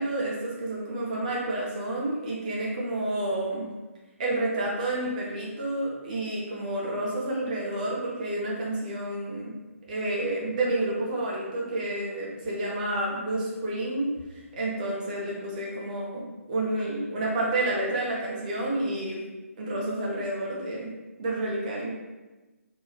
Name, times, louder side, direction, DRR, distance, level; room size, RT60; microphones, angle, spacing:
voice 1, 0.0-3.7 4.2-9.5 9.9-14.1 14.6-19.2 19.6-20.9 21.2-21.9, right 1 dB, 30° right, -4 dB, 0.8 m, -30 dB
2.7 x 2.3 x 3.1 m, 1.2 s
figure-of-eight pair, 140°, 8 cm